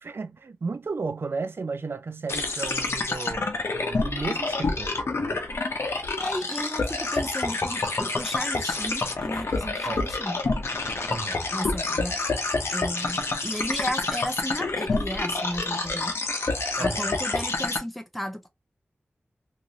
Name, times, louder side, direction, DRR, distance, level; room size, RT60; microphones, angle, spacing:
voice 1, 0.0-5.4 9.9-10.1 11.1-11.4 16.8-17.1, right 4 dB, 65° right, 0.4 m, -34 dB
sound 1, 2.3-17.8, left 3 dB, 75° left, 0.6 m, -28 dB
voice 2, 6.2-10.4 11.5-16.2 16.8-18.5, equal, ahead, 0.4 m, -34 dB
2.9 x 2.5 x 2.6 m
wide cardioid pair, 75°, 4 cm